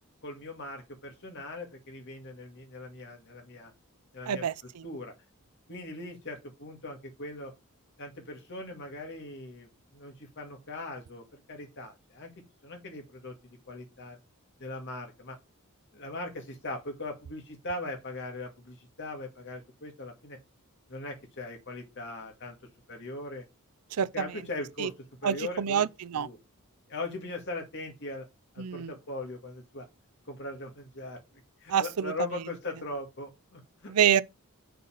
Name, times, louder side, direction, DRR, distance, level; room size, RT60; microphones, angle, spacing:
voice 1, 0.2-3.7 4.1-4.5 4.8-5.1 5.7-7.5 8.0-12.3 12.6-14.2 14.6-15.4 15.9-20.4 20.9-22.6 22.9-23.4 24.1-24.9 25.2-25.9 26.1-26.4 26.9-28.3 28.5-29.9 30.3-31.2 31.6-33.9, left 2 dB, 55° left, 2.2 m, -40 dB
voice 2, 4.3-4.8 24.0-24.1 24.8-24.9 25.2-26.3 28.6-28.9 31.7-32.1 33.9-34.2, right 8 dB, 90° right, 0.5 m, -27 dB
6.8 x 3.9 x 6.4 m
head